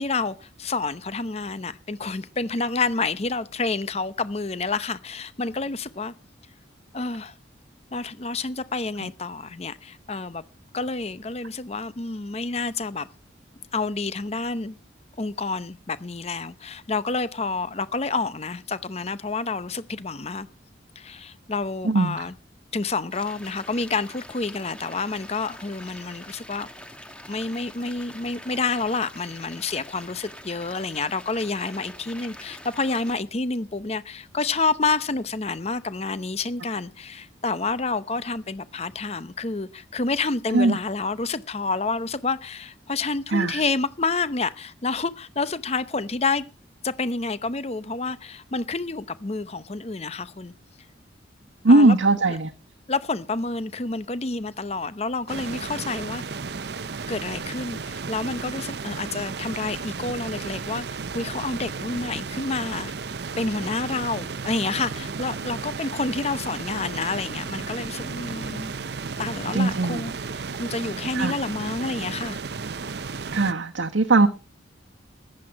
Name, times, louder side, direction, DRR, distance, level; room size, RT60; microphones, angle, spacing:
voice 1, 0.0-6.1 6.9-7.3 7.9-10.4 10.7-13.1 13.7-14.8 15.2-20.5 21.0-22.3 22.7-26.7 27.3-46.4 46.8-50.5 51.7-52.0 52.9-56.4 57.1-62.9 63.4-68.7 69.2-70.1 70.6-72.4, left 3 dB, 35° left, 0.7 m, -29 dB
voice 2, 21.8-22.2 40.5-40.8 43.3-43.6 51.6-52.5 69.5-70.0 71.1-71.3 73.3-74.3, right 2 dB, 80° right, 1.0 m, -19 dB
sound 1, 23.1-33.2, left 1 dB, 5° left, 1.5 m, -44 dB
sound 2, 55.3-73.5, right 4 dB, 60° right, 0.7 m, -34 dB
15.0 x 11.0 x 4.6 m
head